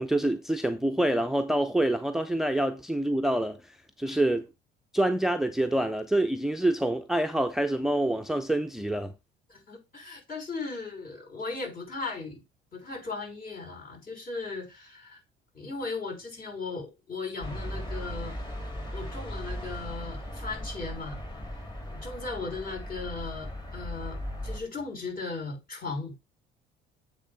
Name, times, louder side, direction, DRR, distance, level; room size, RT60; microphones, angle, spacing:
voice 1, 0.0-4.5 4.9-9.1, right 1 dB, ahead, 0.6 m, -26 dB
voice 2, 9.5-12.4 12.7-15.2 15.5-18.4 18.9-21.2 22.0-26.1, left 3 dB, 45° left, 5.4 m, -37 dB
sound 1, 17.4-24.6, equal, 20° left, 3.4 m, -37 dB
8.4 x 3.7 x 5.2 m
supercardioid pair, 70°, 20 cm